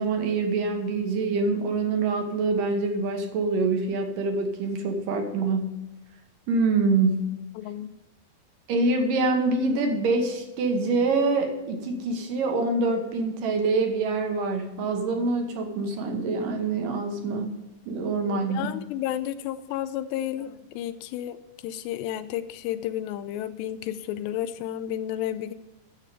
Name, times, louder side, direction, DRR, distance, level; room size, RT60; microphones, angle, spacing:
voice 1, 0.0-5.8 6.5-7.4 8.7-17.6 17.9-18.7, right 3 dB, 65° right, 4 dB, 2.6 m, -25 dB
voice 2, 7.6-7.9 18.2-21.4 21.6-25.5, left 11 dB, 85° left, 11 dB, 2.8 m, -32 dB
11.0 x 7.5 x 4.9 m, 1.0 s
omnidirectional pair, 4.8 m